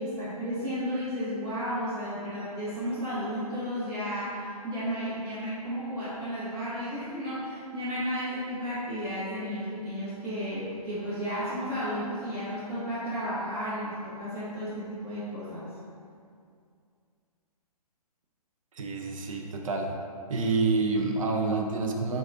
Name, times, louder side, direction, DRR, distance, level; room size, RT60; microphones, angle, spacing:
voice 1, 0.0-15.7, equal, 30° right, -12 dB, 0.9 m, -33 dB
voice 2, 18.7-19.9 20.3-22.2, right 3 dB, 55° right, 2 dB, 0.5 m, -28 dB
4.5 x 2.3 x 2.6 m, 2.3 s
figure-of-eight pair, 135°, 20 cm